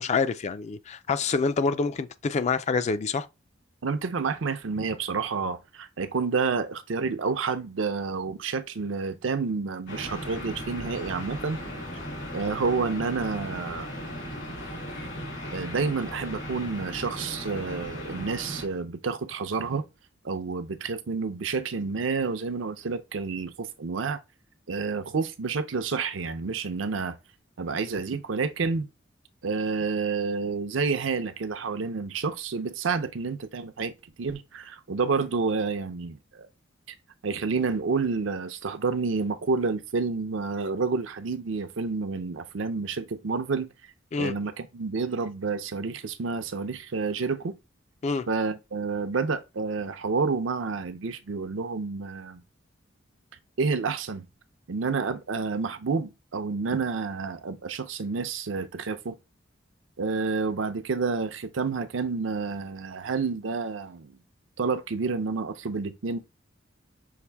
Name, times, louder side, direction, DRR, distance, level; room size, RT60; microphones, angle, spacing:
voice 1, 0.0-3.3 44.1-44.3 48.0-48.3, left 4 dB, 35° left, 0.3 m, -26 dB
voice 2, 3.8-11.6 12.3-13.9 15.5-19.8 20.2-24.2 24.7-27.2 27.6-28.9 29.4-36.5 37.2-43.7 44.2-47.5 48.3-52.4 53.6-54.2 54.7-59.2 60.0-64.2 64.6-66.2, right 4 dB, 75° right, 0.6 m, -29 dB
sound 1, 9.9-18.7, equal, 75° left, 2.4 m, -37 dB
5.8 x 2.6 x 3.4 m
head